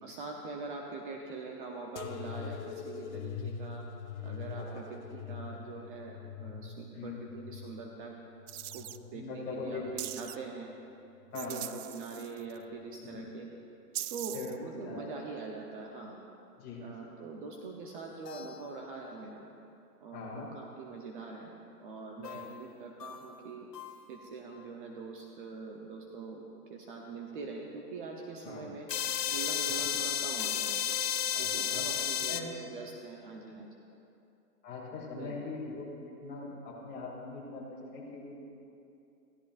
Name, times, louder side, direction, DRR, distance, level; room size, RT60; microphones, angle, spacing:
voice 1, 0.0-3.8 4.2-8.1 8.7-10.7 11.3-13.5 14.1-16.2 16.8-19.5 20.0-21.5 21.8-23.7 24.1-26.4 26.7-28.9 29.3-30.8 31.4-33.7 35.2-35.4, right 4 dB, 35° right, 1 dB, 0.9 m, -43 dB
sound 1, 2.0-9.2 9.7-10.5 11.2-11.8 12.7-12.8, left 6 dB, 50° left, 0.6 m, -43 dB
sound 2, 8.5-9.0 10.0-10.4 11.4-12.6 13.9-14.6, right 13 dB, 70° right, 0.5 m, -40 dB
voice 2, 9.1-9.8 11.3-11.7 13.0-13.2 14.3-14.6 14.8-15.0 16.6-16.9 20.1-20.5 22.3-22.4 28.4-28.7 29.7-29.8 31.3-32.5 34.6-35.9 36.2-38.4, left 4 dB, 20° left, -4 dB, 2.7 m, -42 dB
sound 3, 18.1-18.7 22.2-22.6 23.0-23.2 23.7-24.0 28.9-32.4, left 9 dB, 85° left, 0.9 m, -33 dB
16.0 x 12.5 x 2.6 m, 2.7 s
hypercardioid pair, 150°, 48 cm